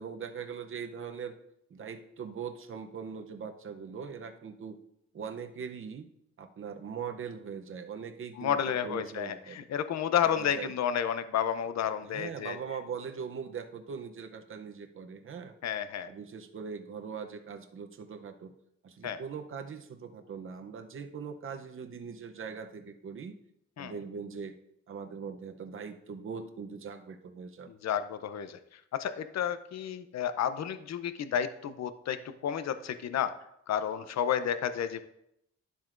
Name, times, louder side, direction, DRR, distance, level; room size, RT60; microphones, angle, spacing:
voice 1, 0.0-1.4 1.7-4.8 5.1-6.1 6.4-9.6 10.4-10.7 12.0-15.5 16.1-18.5 18.8-23.4 23.8-24.6 24.9-27.7, right 6 dB, 45° right, 7 dB, 0.7 m, -41 dB
voice 2, 8.4-12.6 15.6-16.1 19.0-19.2 23.8-23.9 27.7-28.6 29.0-32.2 32.4-33.3 33.7-35.0, left 9 dB, 65° left, 11 dB, 0.6 m, -31 dB
11.5 x 7.5 x 2.5 m, 0.77 s
wide cardioid pair, 175°, 29 cm